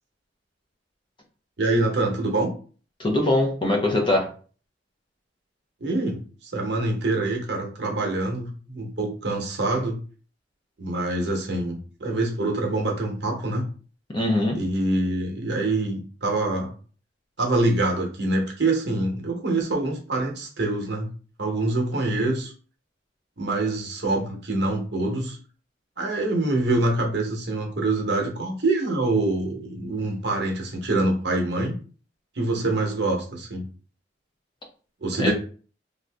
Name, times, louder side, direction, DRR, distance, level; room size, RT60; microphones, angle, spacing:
voice 1, 1.6-2.5 5.8-10.0 10.8-13.7 14.5-16.7 17.4-21.1 21.4-22.5 23.4-25.4 26.0-31.8 32.3-33.7 35.0-35.3, right 2 dB, 60° right, 1 dB, 0.9 m, -25 dB
voice 2, 3.0-4.3 14.1-14.6 35.2-35.3, left 1 dB, 25° left, 0 dB, 0.6 m, -22 dB
2.7 x 2.6 x 3.3 m, 0.40 s
head